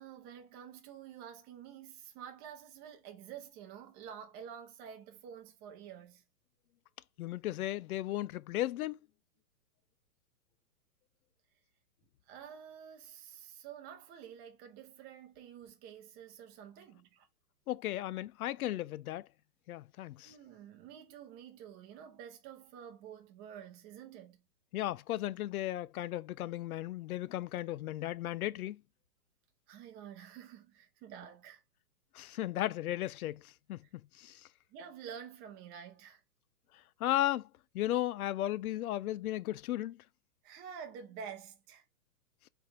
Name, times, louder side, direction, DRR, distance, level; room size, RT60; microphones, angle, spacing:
voice 1, 0.0-6.2 12.3-17.3 20.2-24.4 29.7-31.6 33.8-33.9 34.3-34.4 34.7-36.2 40.4-41.8, right 8 dB, 20° right, 0.8 m, -49 dB
voice 2, 7.2-9.0 17.7-19.3 19.7-20.3 24.7-28.8 32.1-34.5 37.0-37.5 37.7-40.0, left 14 dB, 65° left, 0.5 m, -35 dB
4.4 x 3.4 x 3.4 m
hypercardioid pair, 150°, 47 cm